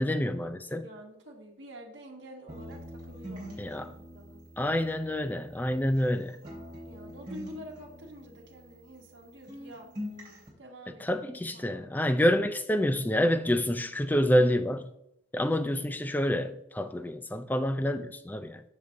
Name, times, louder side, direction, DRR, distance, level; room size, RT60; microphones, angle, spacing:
voice 1, 0.0-0.8 3.6-3.9 4.6-6.4 11.0-14.9 15.3-18.6, equal, 10° left, 0.3 m, -27 dB
voice 2, 0.8-4.4 6.4-9.9 10.6-11.9, equal, 60° right, 1.2 m, -48 dB
sound 1, 2.5-6.1 6.4-9.2 9.5-10.5, equal, 25° right, 2.9 m, -44 dB
6.7 x 6.4 x 3.5 m
head